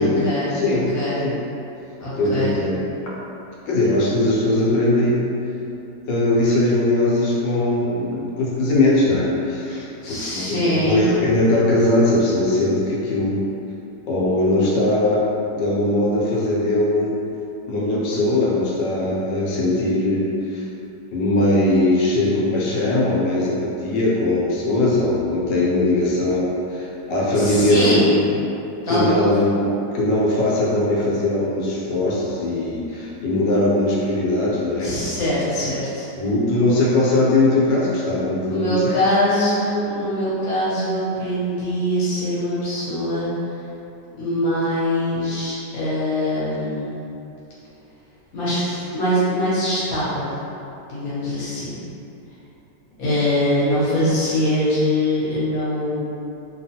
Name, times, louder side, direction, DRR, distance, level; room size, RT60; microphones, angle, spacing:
voice 1, 0.0-1.2 2.0-2.6 10.0-11.1 27.3-28.1 28.8-29.3 34.8-36.1 38.5-43.3 44.2-46.9 48.3-50.3 50.9-51.8 53.0-56.0, left 1 dB, 60° left, -10 dB, 1.3 m, -23 dB
voice 2, 0.5-1.4 2.2-2.9 3.7-5.3 6.1-13.4 14.1-15.3 15.6-17.2 17.7-20.7 21.1-28.2 28.9-29.7 29.9-35.0 35.6-35.7 36.2-38.9, left 2 dB, 85° left, -6 dB, 1.3 m, -20 dB
2.9 x 2.3 x 2.7 m, 2.8 s
omnidirectional pair, 1.9 m